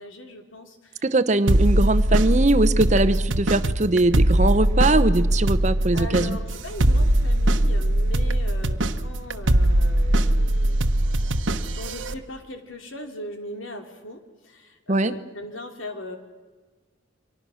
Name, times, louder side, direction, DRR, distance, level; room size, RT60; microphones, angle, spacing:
voice 1, 0.0-1.1 5.9-11.3 11.7-16.2, left 1 dB, 85° left, 4 dB, 3.1 m, -39 dB
voice 2, 1.0-6.4 14.9-15.1, right 2 dB, 35° right, 12 dB, 0.9 m, -21 dB
sound 1, 1.5-12.1, right 1 dB, 80° right, 1.2 m, -21 dB
29.5 x 24.5 x 6.4 m, 1.3 s
head